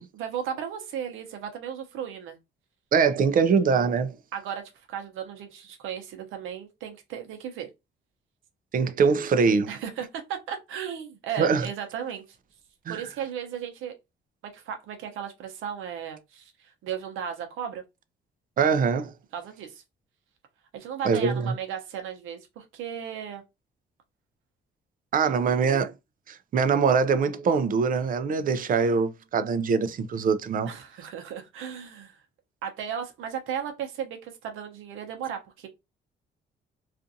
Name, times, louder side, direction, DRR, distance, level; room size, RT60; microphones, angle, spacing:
voice 1, 0.1-2.4 4.3-7.7 9.7-12.2 12.9-14.0 14.5-17.8 19.3-19.8 20.7-23.4 25.2-25.6 30.7-32.2 32.6-35.7, right 8 dB, 85° right, 0.8 m, -35 dB
voice 2, 2.9-4.1 8.7-9.7 11.4-11.7 12.9-13.0 18.6-19.1 21.0-21.5 25.1-25.9 26.3-30.7, right 5 dB, 45° right, 0.4 m, -23 dB
2.5 x 2.5 x 2.6 m
cardioid pair, 90°, 20 cm